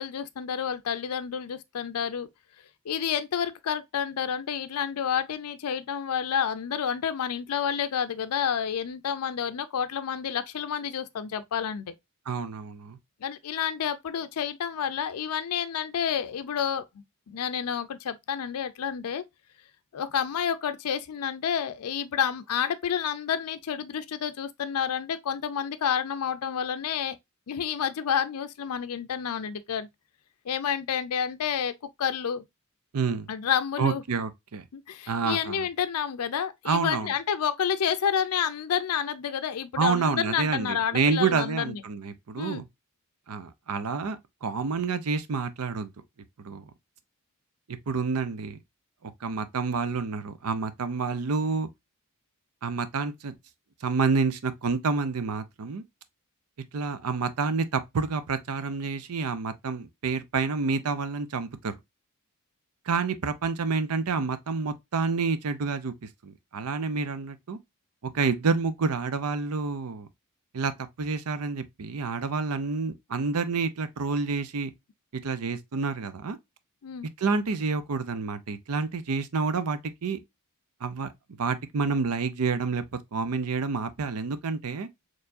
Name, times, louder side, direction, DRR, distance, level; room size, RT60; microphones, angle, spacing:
voice 1, 0.0-2.3 2.9-11.9 13.2-16.8 17.3-19.2 19.9-27.2 27.5-29.9 30.5-31.7 32.0-32.4 33.3-34.0 34.7-41.8 42.4-42.6 76.8-77.1, left 8 dB, 80° left, 0.4 m, -29 dB
voice 2, 12.3-13.0 32.9-33.3 33.8-34.6 35.1-35.7 36.7-37.1 39.8-42.6 43.3-45.9 46.4-46.7 47.7-48.6 49.0-51.7 52.6-53.3 53.8-55.8 56.7-61.7 62.9-67.6 68.0-70.1 70.5-70.7 71.0-74.7 75.2-76.4 77.2-80.2 80.8-81.1 81.4-84.9, right 4 dB, 80° right, 0.6 m, -28 dB
4.4 x 3.1 x 2.5 m
head